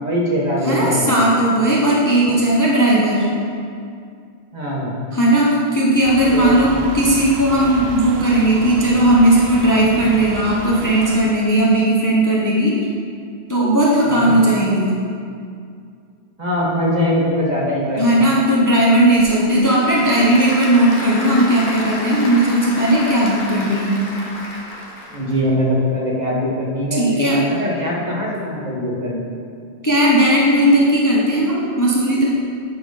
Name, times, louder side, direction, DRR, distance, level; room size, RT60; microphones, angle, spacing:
voice 1, 0.0-1.2 4.5-5.0 6.2-6.6 14.1-14.3 16.4-18.1 25.1-29.4, equal, 40° right, -4 dB, 1.4 m, -22 dB
voice 2, 0.6-3.3 5.1-12.8 13.5-14.9 18.0-24.0 26.9-27.4 29.8-32.2, right 1 dB, 20° left, -5 dB, 0.9 m, -16 dB
sound 1, 6.0-11.2, right 3 dB, 70° right, 0.9 m, -31 dB
Applause / Crowd, 19.0-25.5, left 1 dB, 50° left, 1.2 m, -31 dB
8.9 x 4.5 x 4.9 m, 2.3 s
omnidirectional pair, 1.1 m